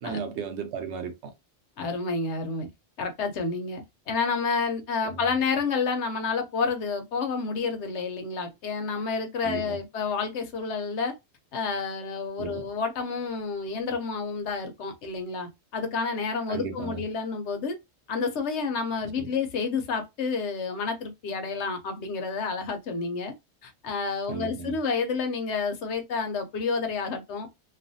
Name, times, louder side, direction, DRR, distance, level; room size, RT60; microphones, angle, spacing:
voice 1, 0.0-1.3 5.0-5.3 9.4-9.8 12.4-12.7 16.5-17.0 19.2-19.3 24.3-24.8, right 5 dB, 80° right, 0.9 m, -35 dB
voice 2, 1.8-2.7 3.0-11.1 11.5-17.8 18.1-23.3 23.6-27.5, left 4 dB, 75° left, 1.0 m, -29 dB
2.4 x 2.4 x 2.6 m
omnidirectional pair, 1.2 m